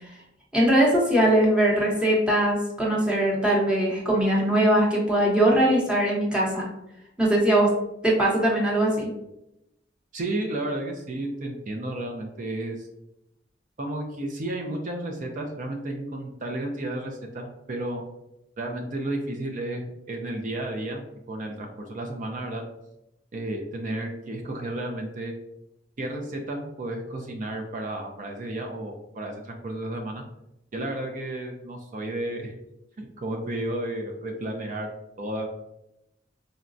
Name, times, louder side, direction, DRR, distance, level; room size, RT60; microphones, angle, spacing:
voice 1, 0.5-6.6 7.2-7.7 8.0-9.1, right 1 dB, 5° right, -5 dB, 0.8 m, -21 dB
voice 2, 10.1-12.9 13.8-18.0 18.6-22.6 23.3-25.3 26.0-30.2 30.7-32.5 33.0-34.9 35.2-35.5, right 1 dB, 45° right, 2 dB, 0.4 m, -32 dB
3.9 x 2.2 x 2.5 m, 0.87 s
head